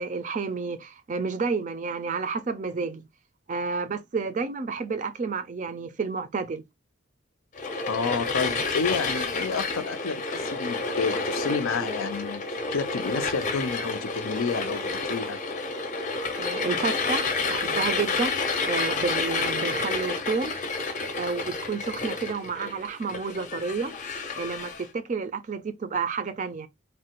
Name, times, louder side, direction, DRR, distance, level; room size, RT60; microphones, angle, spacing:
voice 1, 0.0-3.0 3.5-6.6 16.4-18.4 18.6-20.6 21.2-23.9 24.4-26.7, right 4 dB, 40° right, 0.3 m, -30 dB
sound 1, 7.5-24.8, left 3 dB, 35° left, 0.6 m, -30 dB
voice 2, 7.9-15.4, left 5 dB, 90° left, 0.5 m, -30 dB
3.1 x 2.2 x 2.8 m
head